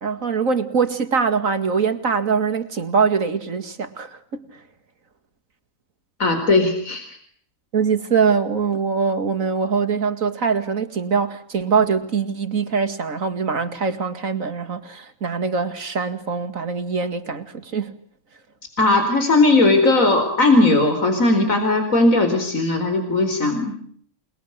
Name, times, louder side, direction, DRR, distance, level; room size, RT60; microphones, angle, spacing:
voice 1, 0.0-4.6 7.7-18.0, right 5 dB, 70° right, 10 dB, 2.6 m, -23 dB
voice 2, 6.2-7.1 18.8-23.8, left 2 dB, 70° left, 6 dB, 4.9 m, -18 dB
28.5 x 21.5 x 9.6 m, 0.63 s
omnidirectional pair, 1.5 m